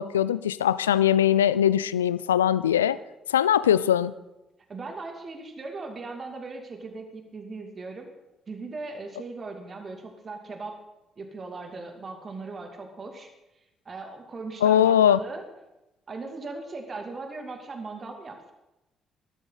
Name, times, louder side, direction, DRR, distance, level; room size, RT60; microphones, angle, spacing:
voice 1, 0.0-3.0 3.3-4.1 14.6-15.2, left 10 dB, 90° left, 17 dB, 0.4 m, -21 dB
voice 2, 4.7-8.1 8.5-10.8 11.2-13.3 13.8-15.4 16.1-18.5, right 3 dB, 40° right, 3 dB, 2.7 m, -38 dB
19.0 x 12.5 x 4.1 m, 0.96 s
hypercardioid pair, 45°, 0 cm